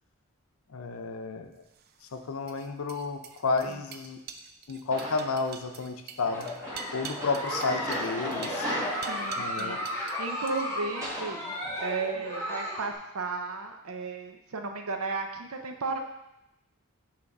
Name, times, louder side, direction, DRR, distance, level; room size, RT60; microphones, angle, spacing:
voice 1, 0.7-1.6 2.1-4.2 4.7-6.5 6.9-8.7 9.4-9.8, left 4 dB, 75° left, 6 dB, 0.6 m, -31 dB
sound 1, 1.7-10.2 10.5-10.9, right 7 dB, 45° right, 0.3 m, -45 dB
sound 2, 4.9-5.5 6.2-11.3, equal, 15° right, 1.6 m, -38 dB
Giggle, 6.2-12.9, left 1 dB, 10° left, 1.0 m, -35 dB
voice 2, 9.1-9.8 10.2-11.5 11.8-16.0, right 4 dB, 75° right, 4 dB, 0.7 m, -34 dB
5.7 x 3.4 x 5.3 m, 0.90 s
head